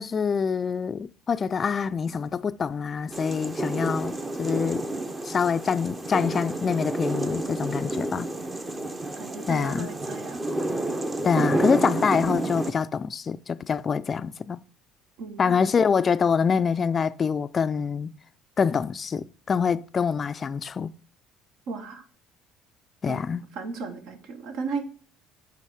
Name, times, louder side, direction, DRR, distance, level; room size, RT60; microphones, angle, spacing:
voice 1, 0.0-4.8 5.2-8.3 9.5-9.9 11.2-14.6 15.4-18.1 18.6-20.9 23.0-23.4, left 6 dB, 35° left, 0.3 m, -25 dB
sound 1, 3.1-12.7, right 2 dB, 20° right, 0.7 m, -30 dB
voice 2, 8.7-10.5 15.2-15.6 21.7-22.0 23.1-23.2 23.5-24.8, right 4 dB, 70° right, 1.1 m, -35 dB
7.7 x 3.4 x 4.8 m
supercardioid pair, 90°, 0 cm